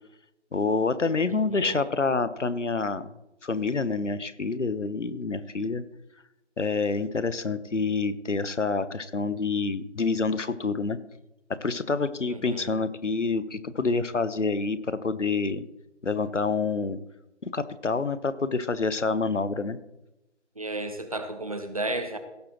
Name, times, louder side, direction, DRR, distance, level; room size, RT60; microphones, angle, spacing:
voice 1, 0.5-3.1 3.4-5.8 6.6-11.0 11.6-15.6 16.0-17.0 17.4-19.8, left 4 dB, 85° left, 14 dB, 1.0 m, -27 dB
voice 2, 1.3-1.9 12.3-12.7 20.6-22.2, right 2 dB, 30° right, 8 dB, 1.1 m, -33 dB
17.0 x 7.7 x 3.1 m, 0.93 s
figure-of-eight pair, 165°, 36 cm